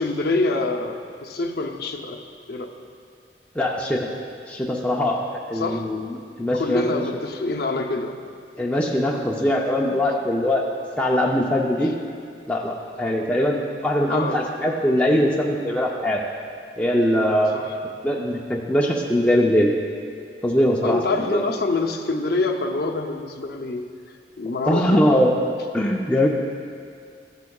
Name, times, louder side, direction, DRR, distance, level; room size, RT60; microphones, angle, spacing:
voice 1, 0.0-2.2 2.5-2.7 5.5-5.8 6.5-8.2 11.8-11.9 14.1-14.4 17.5-17.7 20.8-23.9 24.4-25.1, left 3 dB, 60° left, 3 dB, 0.6 m, -26 dB
voice 2, 3.6-4.1 4.5-7.0 8.6-10.7 11.0-12.0 12.5-16.2 16.8-17.6 18.0-19.8 20.4-21.0 21.3-21.4 24.4-25.3 25.7-26.3, left 1 dB, 5° left, -2 dB, 0.5 m, -21 dB
14.0 x 8.1 x 2.3 m, 2.2 s
head